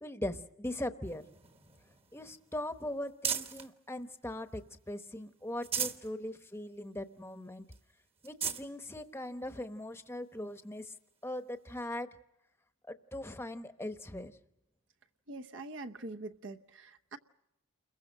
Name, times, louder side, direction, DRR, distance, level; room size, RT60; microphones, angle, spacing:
voice 1, 0.0-1.2 2.1-7.7 8.2-10.9 11.2-12.1 12.9-14.3, left 1 dB, 10° left, 8 dB, 1.0 m, -40 dB
sound 1, 1.0-3.7 4.2-5.0 5.4-6.1 6.5-6.6 7.0-7.1 7.7-7.8 8.2-8.7 9.5-9.6 11.3-11.4, right 7 dB, 25° right, 1.2 m, -38 dB
voice 2, 15.3-17.2, right 2 dB, 55° right, 5 dB, 0.8 m, -44 dB
29.5 x 22.0 x 6.5 m, 0.87 s
head